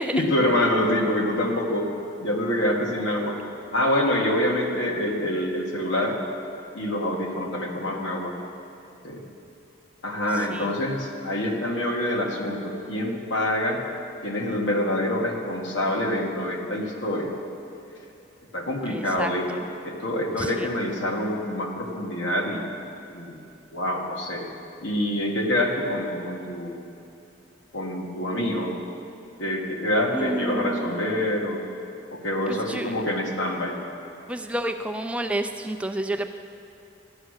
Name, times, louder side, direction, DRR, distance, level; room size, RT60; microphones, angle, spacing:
voice 1, 0.1-1.9 2.2-3.4 3.7-6.2 6.7-8.3 9.0-9.2 10.0-13.8 14.2-17.4 18.5-22.7 23.1-24.5 24.8-26.8 27.7-28.8 29.4-31.7 32.1-33.8, left 1 dB, 75° left, 0 dB, 1.8 m, -26 dB
voice 2, 18.9-19.6 20.4-20.7 30.1-30.9 32.5-32.9 34.3-36.3, right 1 dB, 5° right, 6 dB, 0.3 m, -30 dB
14.0 x 10.0 x 6.5 m, 2.7 s
head